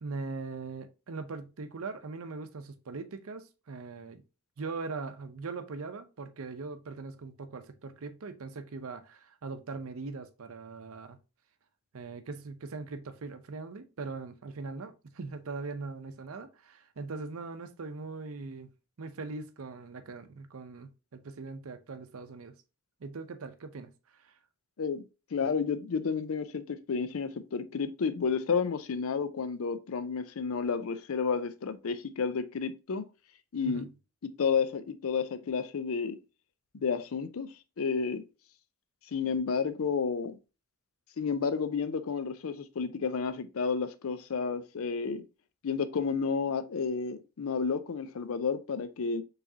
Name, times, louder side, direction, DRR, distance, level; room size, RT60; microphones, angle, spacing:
voice 1, 0.0-4.2 4.6-11.2 11.9-18.7 19.0-22.6 23.0-24.3 33.6-33.9, right 4 dB, 70° right, 0.6 m, -41 dB
voice 2, 25.3-33.0 33.5-33.9 34.4-36.2 36.7-38.2 39.1-40.4 41.2-45.2 45.6-49.2, left 5 dB, 70° left, 0.5 m, -31 dB
4.7 x 3.2 x 2.7 m
head